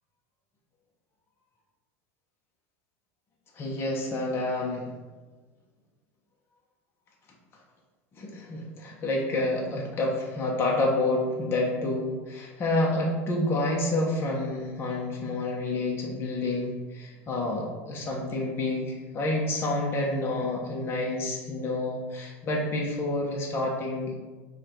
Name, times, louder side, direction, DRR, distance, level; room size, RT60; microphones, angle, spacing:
voice 1, 3.5-4.9 8.1-24.1, left 2 dB, 35° left, -2 dB, 0.9 m, -29 dB
4.9 x 2.5 x 4.4 m, 1.3 s
supercardioid pair, 110°, 7 cm